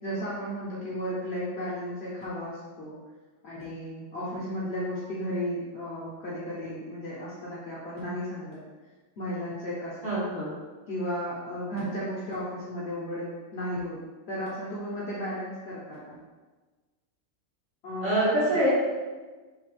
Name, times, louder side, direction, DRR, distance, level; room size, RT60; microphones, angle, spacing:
voice 1, 0.0-3.0 3.4-8.6 9.2-10.2 10.9-13.3 13.5-14.0 14.3-16.2 17.8-18.6, equal, 60° left, -7 dB, 0.8 m, -34 dB
voice 2, 10.0-10.5 18.0-18.8, right 1 dB, 45° right, -9 dB, 1.3 m, -24 dB
3.1 x 2.2 x 3.0 m, 1.3 s
omnidirectional pair, 1.5 m